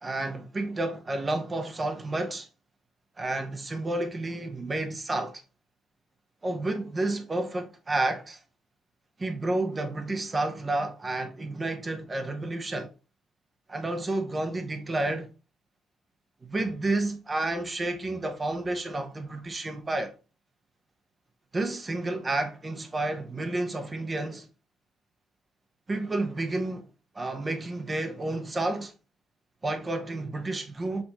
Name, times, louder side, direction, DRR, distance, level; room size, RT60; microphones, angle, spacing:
voice 1, 0.0-2.5 3.2-5.4 6.4-8.4 9.2-12.9 13.7-15.3 16.4-20.1 21.5-24.5 25.9-26.9 27.1-28.9 29.6-31.0, right 2 dB, 20° right, 0.7 m, -30 dB
6.4 x 2.6 x 2.9 m
cardioid pair, 135°, 0 cm